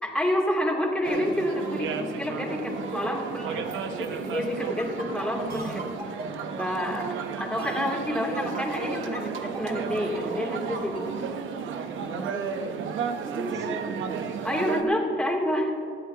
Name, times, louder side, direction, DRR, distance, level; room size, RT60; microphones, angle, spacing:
voice 1, 0.0-5.9 6.6-7.1 7.4-11.1 14.4-15.7, left 1 dB, 5° left, -2 dB, 2.8 m, -28 dB
sound 1, 1.0-14.8, right 6 dB, 75° right, 0.9 m, -33 dB
sound 2, 4.8-11.0, right 2 dB, 50° right, 3.2 m, -38 dB
voice 2, 12.0-14.2, equal, 15° right, -1 dB, 2.6 m, -38 dB
19.0 x 12.5 x 2.9 m, 2.6 s
cardioid pair, 90°, 20 cm